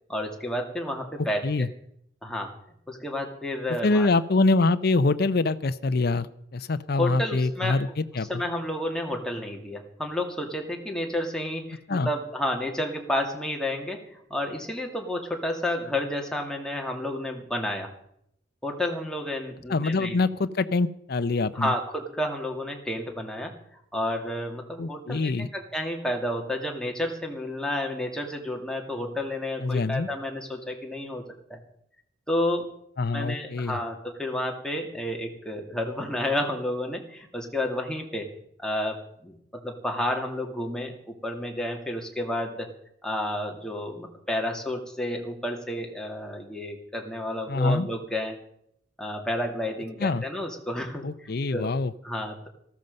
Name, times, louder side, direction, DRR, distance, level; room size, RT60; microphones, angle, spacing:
voice 1, 0.1-1.4 2.2-2.5 2.9-4.1 7.0-7.8 8.3-17.9 18.6-20.2 21.5-23.5 23.9-31.2 31.5-31.6 32.3-32.7 33.1-38.3 38.6-42.7 43.0-48.3 49.0-51.7 52.0-52.5, left 1 dB, 5° left, 1 dB, 2.3 m, -31 dB
voice 2, 3.8-6.3 6.5-8.4 11.9-12.1 19.7-21.7 24.8-25.5 29.6-30.1 33.0-33.8 47.5-47.9 50.0-50.2 51.0-51.9, left 3 dB, 60° left, 11 dB, 0.6 m, -25 dB
14.5 x 13.5 x 5.3 m, 0.71 s
head